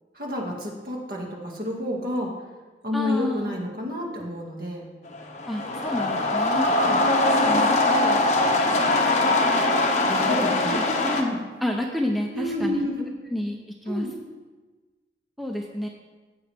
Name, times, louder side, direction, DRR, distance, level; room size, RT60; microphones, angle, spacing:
voice 1, 0.1-2.3 2.8-4.9 6.8-7.0 10.1-10.8 11.2-11.4 12.3-13.1 13.9-14.1, left 1 dB, 55° right, -1 dB, 2.1 m, -29 dB
voice 2, 2.9-3.6 5.5-6.7 7.4-8.2 10.3-12.9 13.3-14.1 15.4-15.9, left 1 dB, ahead, 0 dB, 0.7 m, -30 dB
sound 1, 5.1-11.2, left 2 dB, 40° left, 1.1 m, -22 dB
15.0 x 7.7 x 3.5 m, 1.3 s
head